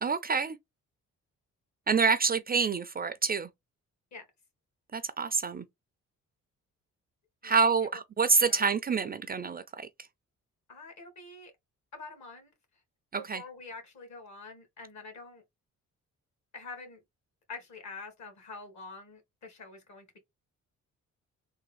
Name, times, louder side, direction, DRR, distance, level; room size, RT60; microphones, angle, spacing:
voice 1, 0.0-0.6 1.9-3.5 4.9-5.6 7.4-9.9 13.1-13.4, right 5 dB, 30° right, 0.4 m, -27 dB
voice 2, 10.7-11.5 11.9-12.5 13.2-15.4 16.5-17.0 17.5-20.2, left 3 dB, 60° left, 1.7 m, -46 dB
3.5 x 2.1 x 3.3 m
cardioid pair, 80°, 31 cm